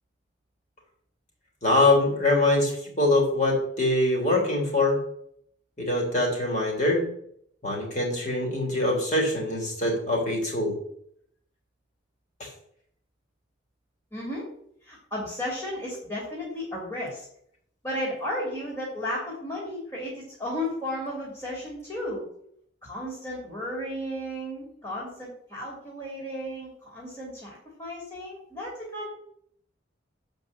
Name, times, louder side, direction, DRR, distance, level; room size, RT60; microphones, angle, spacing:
voice 1, 1.6-5.0 5.8-7.0 7.6-10.7 12.4-12.5, left 2 dB, 40° left, -1 dB, 3.3 m, -23 dB
voice 2, 14.1-14.5 14.8-17.2 17.8-22.2 22.8-29.1, left 1 dB, 20° left, -4 dB, 2.9 m, -34 dB
7.7 x 5.4 x 7.2 m, 0.67 s
head